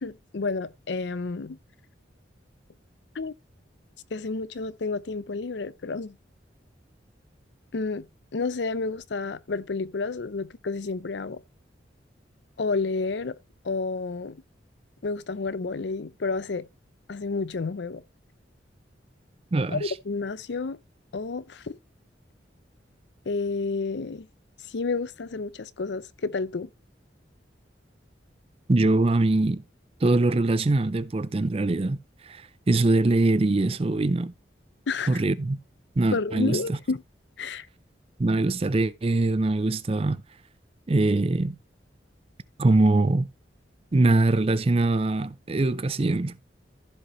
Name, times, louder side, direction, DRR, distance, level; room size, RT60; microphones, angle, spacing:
voice 1, 0.0-1.6 3.1-3.3 4.1-6.2 7.7-8.1 8.3-11.4 12.6-13.3 13.6-14.4 15.0-16.7 17.1-18.0 19.7-20.8 21.1-21.8 23.3-24.3 24.7-26.7 34.9-35.2 36.1-37.0 37.4-37.7, left 4 dB, 70° left, 0.6 m, -30 dB
voice 2, 19.5-19.9 28.7-29.6 30.0-32.0 32.2-34.3 35.1-35.6 36.0-36.8 38.2-40.2 40.9-41.6 42.6-43.3 43.9-46.4, right 2 dB, 30° right, 0.5 m, -23 dB
15.0 x 5.3 x 3.1 m
head